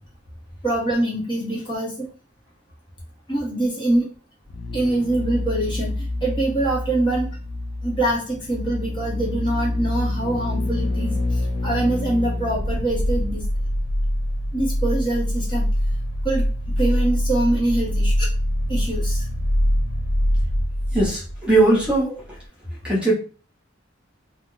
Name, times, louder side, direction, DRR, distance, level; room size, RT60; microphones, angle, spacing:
voice 1, 0.6-1.9 3.3-4.1 4.7-7.3 7.8-11.2 11.6-13.4 14.5-15.7 16.2-16.4 16.8-18.3 18.7-19.2, right 1 dB, 25° left, -4 dB, 0.9 m, -24 dB
sound 1, 4.5-22.0 22.3-22.4, left 1 dB, 55° left, 0.5 m, -25 dB
voice 2, 20.9-22.2 22.8-23.1, right 2 dB, 5° right, -5 dB, 0.9 m, -19 dB
2.4 x 2.2 x 3.7 m, 0.36 s
head